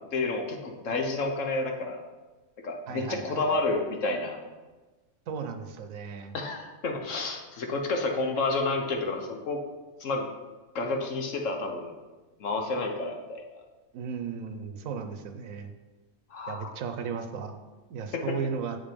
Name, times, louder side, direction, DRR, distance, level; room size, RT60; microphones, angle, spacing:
voice 1, 0.1-2.0 2.6-4.4 6.3-9.6 10.0-10.3 10.7-11.9 12.4-13.4 16.3-16.7 18.1-18.3, left 3 dB, 70° left, 3 dB, 1.4 m, -30 dB
voice 2, 2.9-3.6 5.3-6.3 13.9-15.7 16.5-17.6 17.9-18.8, right 6 dB, 80° right, 7 dB, 1.2 m, -35 dB
7.7 x 5.3 x 5.2 m, 1.2 s
omnidirectional pair, 1.4 m